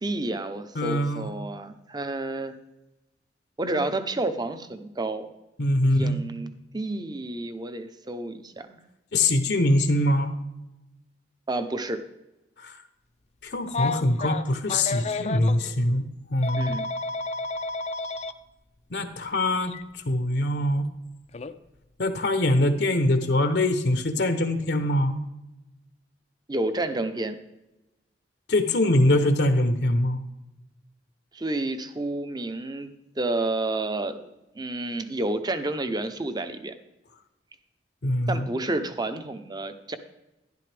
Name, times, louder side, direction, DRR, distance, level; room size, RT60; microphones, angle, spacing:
voice 1, 0.0-2.5 3.6-5.3 5.8-8.8 11.5-12.0 16.6-16.9 26.5-27.4 31.3-32.9 33.2-34.3 34.5-36.7 38.3-40.0, right 2 dB, 25° right, 10 dB, 0.7 m, -30 dB
voice 2, 0.8-1.3 5.6-6.2 9.1-10.3 12.6-12.8 13.4-16.0 16.3-16.7 18.9-20.9 22.0-25.2 28.5-30.2 38.0-38.4, left 1 dB, 70° left, 8 dB, 0.9 m, -23 dB
Telephone, 13.7-15.6 16.4-18.3 19.7-19.8 21.3-21.5, left 3 dB, 40° left, 0.5 m, -31 dB
12.0 x 11.0 x 3.4 m, 0.97 s
head